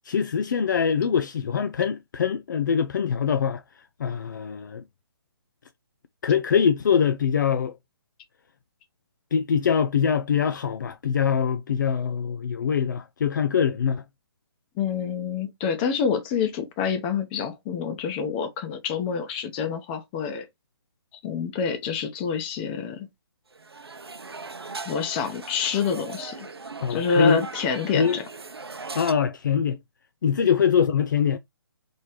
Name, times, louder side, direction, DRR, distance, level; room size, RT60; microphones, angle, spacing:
voice 1, 0.1-3.6 4.0-4.8 6.2-7.8 9.3-14.0 26.8-27.4 27.9-28.2 29.0-29.8 30.2-31.4, left 7 dB, 50° left, 0.4 m, -23 dB
voice 2, 14.8-20.4 21.2-23.1 24.9-26.5 26.9-28.2, left 6 dB, 25° left, 0.8 m, -27 dB
sound 1, 23.5-29.1, right 4 dB, 80° right, 0.7 m, -39 dB
4.3 x 3.2 x 3.1 m
figure-of-eight pair, 135°, 13 cm